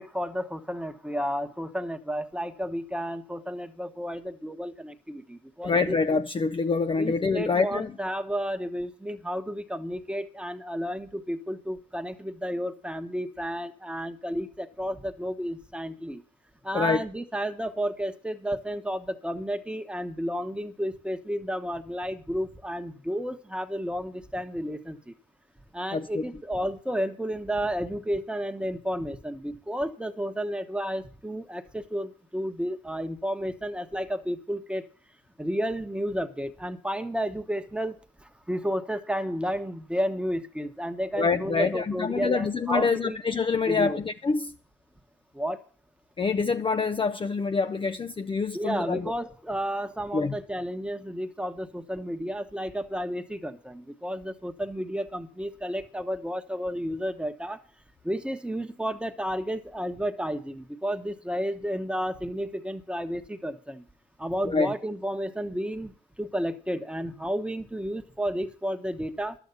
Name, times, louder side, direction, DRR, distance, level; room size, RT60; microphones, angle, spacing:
voice 1, 0.0-6.0 7.0-16.2 16.6-25.1 25.7-34.8 35.4-43.2 43.7-44.0 45.3-45.6 48.5-57.6 58.0-63.8 64.2-69.4, equal, 5° right, 1.2 m, -32 dB
voice 2, 5.6-7.9 16.7-17.0 25.9-26.2 41.2-44.5 46.2-49.1 50.1-50.4 64.4-64.7, left 4 dB, 25° left, 0.6 m, -26 dB
11.5 x 8.2 x 7.0 m
cardioid pair, 90°, 20 cm